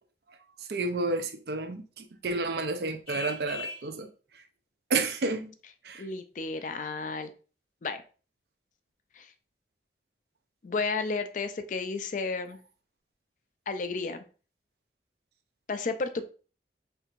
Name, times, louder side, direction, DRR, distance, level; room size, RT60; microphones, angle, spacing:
voice 1, 0.7-4.1 4.9-5.5 5.8-6.0, right 3 dB, 60° right, 0.5 m, -30 dB
Vehicle horn car horn honking, 3.1-3.9, left 4 dB, 30° right, 1.3 m, -39 dB
voice 2, 6.0-7.3 7.8-8.0 9.1-9.3 10.6-12.6 13.7-14.3 15.7-16.2, left 4 dB, 45° left, 0.4 m, -32 dB
4.5 x 3.3 x 2.5 m
head